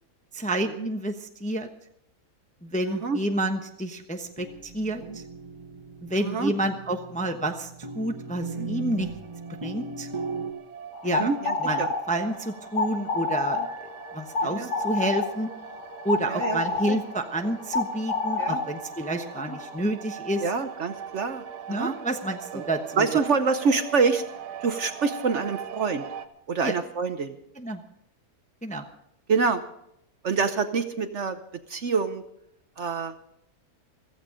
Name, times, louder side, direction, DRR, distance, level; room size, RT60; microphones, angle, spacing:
voice 1, 0.3-1.7 2.6-5.2 6.0-7.7 7.9-9.1 9.6-10.1 11.0-11.3 11.6-13.6 14.1-15.5 16.0-20.5 21.7-23.1 26.6-26.7 27.6-27.8 28.6-28.8, right 1 dB, 5° left, 5 dB, 0.7 m, -29 dB
voice 2, 2.9-3.2 5.1-5.2 6.2-6.5 8.6-8.7 10.4-10.5 11.0-11.9 13.6-13.7 14.4-14.7 16.3-17.0 18.4-18.6 19.5-19.6 20.4-21.4 21.7-21.9 22.5-22.6 23.0-24.2 24.6-26.0 26.5-27.4 29.3-29.6 30.2-31.4 31.7-32.2 32.8-33.1, right 5 dB, 55° right, 9 dB, 1.0 m, -26 dB
sound 1, 4.2-10.5, right 3 dB, 20° right, 1.0 m, -38 dB
sound 2, 8.2-26.3, right 8 dB, 85° right, 1.5 m, -42 dB
sound 3, 10.9-19.8, left 3 dB, 80° left, 2.0 m, -30 dB
15.5 x 15.0 x 5.1 m, 0.77 s
omnidirectional pair, 1.7 m